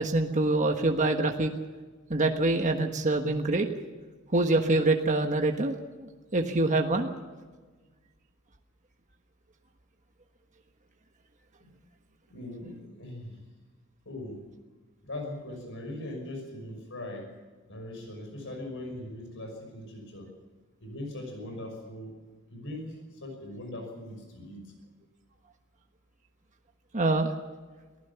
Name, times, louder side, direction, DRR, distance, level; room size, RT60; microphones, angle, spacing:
voice 1, 0.0-1.5 2.1-3.7 4.3-5.7 6.3-7.1 26.9-27.3, right 2 dB, 35° right, 4 dB, 1.4 m, -25 dB
voice 2, 12.3-13.4 14.1-14.4 15.0-17.3 17.7-20.3 20.8-22.1 22.5-24.7, left 1 dB, 60° left, 3 dB, 5.9 m, -40 dB
23.5 x 15.5 x 7.0 m, 1.4 s
head